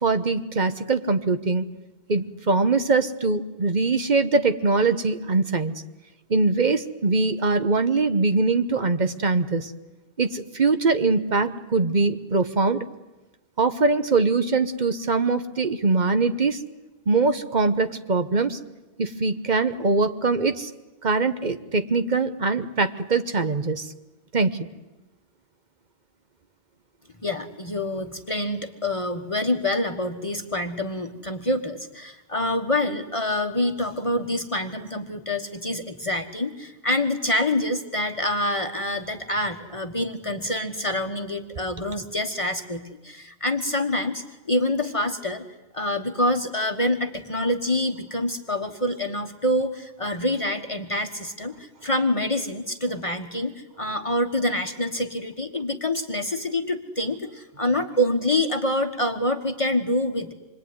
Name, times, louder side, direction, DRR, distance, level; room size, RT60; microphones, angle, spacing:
voice 1, 0.0-1.7 2.1-5.7 6.3-9.7 10.2-12.8 13.6-16.6 17.1-18.6 19.0-20.7 21.0-23.9 24.3-24.7, right 3 dB, 45° right, 9 dB, 1.3 m, -22 dB
voice 2, 27.2-45.5 45.7-60.3, left 1 dB, 30° left, 5 dB, 1.4 m, -26 dB
27.0 x 22.0 x 9.6 m, 1.1 s
omnidirectional pair, 1.1 m